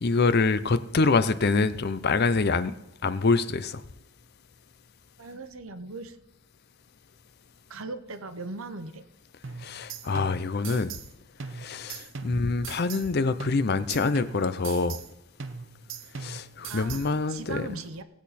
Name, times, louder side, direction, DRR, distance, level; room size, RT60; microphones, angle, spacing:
voice 1, 0.0-2.7 3.0-3.8 9.6-10.9 11.5-15.0 16.2-17.7, left 3 dB, 50° left, 0.5 m, -25 dB
voice 2, 5.2-6.2 7.7-9.1 16.7-18.0, right 3 dB, 80° right, 1.0 m, -39 dB
sound 1, 9.4-11.1 11.4-13.1 13.4-15.1 15.4-17.1, right 5 dB, 60° right, 0.7 m, -40 dB
18.0 x 8.3 x 4.2 m
head